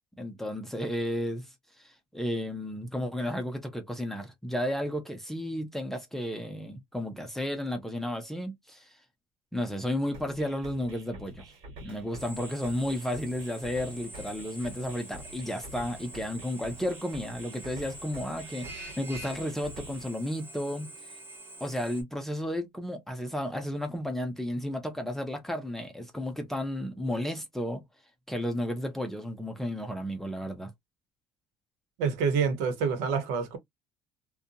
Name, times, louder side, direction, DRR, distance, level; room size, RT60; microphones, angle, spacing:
voice 1, 0.2-1.5 1.8-8.9 9.5-11.4 11.8-20.9 21.6-27.8 28.3-30.7, left 1 dB, 5° left, 0.5 m, -33 dB
sound 1, 10.1-20.1, right 1 dB, 60° right, 1.4 m, -48 dB
Drill, 12.2-22.0, right 1 dB, 20° right, 1.1 m, -46 dB
voice 2, 32.0-33.6, right 5 dB, 85° right, 1.0 m, -27 dB
2.6 x 2.3 x 2.5 m
cardioid pair, 155°, 11 cm